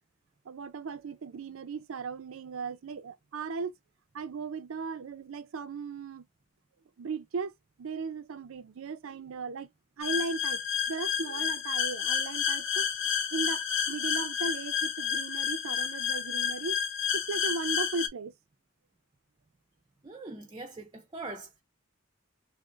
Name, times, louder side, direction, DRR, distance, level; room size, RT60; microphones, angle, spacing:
voice 1, 0.5-3.7 4.1-6.2 7.0-7.5 7.8-9.7 10.0-12.9 13.3-16.8 17.1-18.3, right 4 dB, 90° right, 0.5 m, -37 dB
sound 1, 10.0-18.1, left 8 dB, 70° left, 0.6 m, -30 dB
voice 2, 20.0-21.6, right 2 dB, 20° right, 0.4 m, -42 dB
2.6 x 2.4 x 3.7 m
head